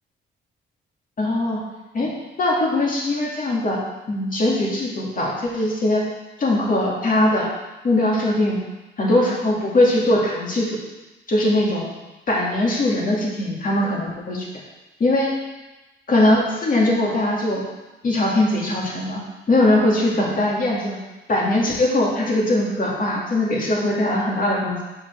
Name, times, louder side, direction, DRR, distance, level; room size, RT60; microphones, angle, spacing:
voice 1, 1.2-1.6 1.9-3.8 4.1-6.1 6.4-7.5 7.8-8.6 9.0-10.8 11.3-11.9 12.3-14.5 15.0-15.3 16.1-17.6 18.0-19.2 19.5-21.0 21.3-24.8, left 1 dB, 45° left, -3 dB, 2.3 m, -20 dB
5.8 x 5.3 x 6.3 m, 1.1 s
cardioid pair, 90°, 20 cm